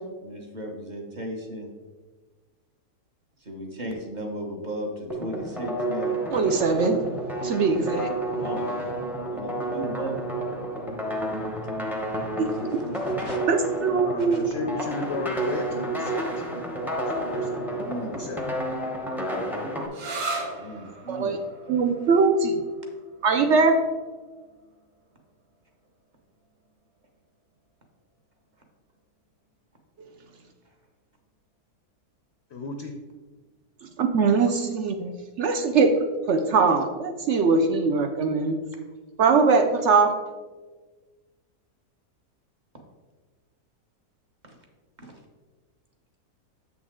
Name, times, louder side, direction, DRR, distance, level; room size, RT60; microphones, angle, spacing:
voice 1, 0.2-1.7 3.4-6.2 8.4-8.7 9.3-10.9 12.5-13.4 14.2-14.4 17.8-18.1 20.2-21.3 44.4-44.5 45.0-45.1, right 1 dB, 30° right, 2 dB, 1.0 m, -36 dB
sound 1, 5.1-19.9, right 1 dB, ahead, 0.5 m, -30 dB
voice 2, 6.3-7.0 7.4-8.1 12.4-12.5 13.5-14.4 21.1-21.4 21.7-22.5 23.2-23.7 34.0-35.9 36.3-38.6 39.2-40.1, right 4 dB, 70° right, 6 dB, 0.7 m, -21 dB
voice 3, 14.0-16.2 17.1-17.8 18.1-18.4 32.5-32.9, left 3 dB, 60° left, 4 dB, 0.7 m, -34 dB
sound 2, 19.9-27.3, right 2 dB, 85° right, 1.8 m, -39 dB
7.6 x 6.2 x 3.7 m, 1.3 s
omnidirectional pair, 1.8 m